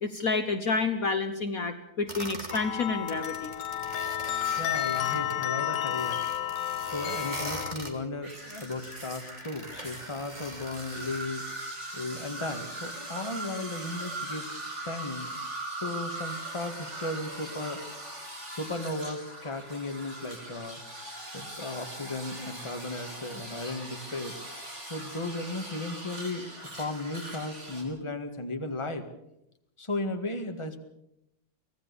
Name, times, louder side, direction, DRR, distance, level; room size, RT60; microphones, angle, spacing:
voice 1, 0.0-3.5, left 4 dB, 55° left, 8 dB, 1.5 m, -29 dB
sound 1, 2.1-2.6 3.0-5.3 5.7-7.9 8.5-11.3, right 1 dB, 25° right, 2.9 m, -42 dB
sound 2, 2.5-7.7, left 11 dB, 80° left, 1.7 m, -31 dB
voice 2, 4.6-6.5 6.9-11.4 11.9-14.5 14.8-15.3 15.8-17.8 18.5-20.8 21.3-24.4 24.8-26.5 26.8-29.1 29.8-30.8, left 2 dB, 15° left, 6 dB, 1.8 m, -35 dB
sound 3, 8.2-27.8, right 1 dB, 40° right, 5.8 m, -40 dB
25.0 x 17.0 x 7.0 m, 0.81 s
omnidirectional pair, 1.9 m